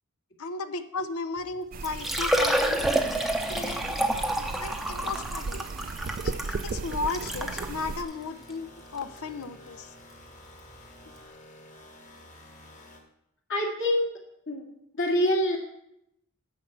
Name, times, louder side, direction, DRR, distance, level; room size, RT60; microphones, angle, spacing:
voice 1, 0.4-3.2 3.5-5.6 6.2-8.7 8.9-9.9, left 4 dB, 80° left, 10 dB, 0.7 m, -35 dB
Liquid, 1.4-1.5 1.8-7.7 8.4-8.5 9.0-9.1 10.7-10.8 11.0-11.1, right 1 dB, ahead, 0.7 m, -28 dB
sound 1, 1.7-8.0, right 4 dB, 40° right, 0.4 m, -36 dB
sound 2, 6.9-13.0, left 1 dB, 35° left, 1.6 m, -50 dB
voice 2, 13.5-14.1 14.5-14.6 14.9-15.6, left 1 dB, 60° left, -1 dB, 2.3 m, -25 dB
10.0 x 4.7 x 7.4 m, 0.79 s
head